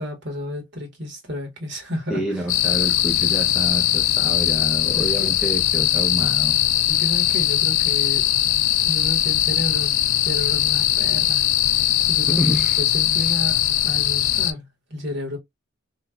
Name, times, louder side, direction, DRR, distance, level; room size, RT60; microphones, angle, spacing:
voice 1, 0.0-2.2 4.9-5.3 6.9-8.2 8.8-9.9 10.2-11.4 11.7-14.6 14.9-15.4, left 1 dB, 55° right, 1.4 m, -31 dB
voice 2, 2.1-6.6 12.3-12.8 13.2-13.3, equal, ahead, 0.7 m, -28 dB
sound 1, 2.5-14.5, left 12 dB, 70° left, 0.4 m, -20 dB
3.0 x 2.4 x 2.3 m
head